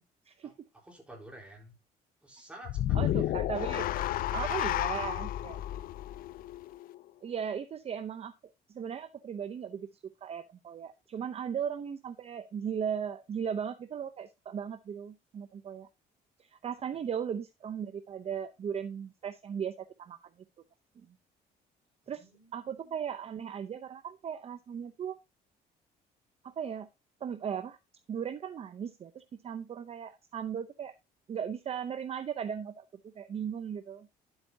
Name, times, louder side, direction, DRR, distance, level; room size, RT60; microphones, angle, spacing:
voice 1, 0.8-1.7 2.2-3.4 3.9-4.0 22.1-22.9, right 1 dB, 5° right, 0 dB, 4.0 m, -51 dB
sound 1, 2.7-7.0, left 13 dB, 60° left, 0.4 m, -32 dB
voice 2, 2.9-3.9 4.3-5.8 7.2-8.3 8.7-9.9 10.2-15.9 16.4-20.2 21.0-21.1 22.1-25.2 26.4-26.9 27.2-27.8 28.1-30.9 31.3-32.8 33.1-34.1, right 8 dB, 35° right, 11 dB, 0.6 m, -37 dB
10.5 x 8.0 x 2.7 m, 0.24 s
cardioid pair, 110°, 17 cm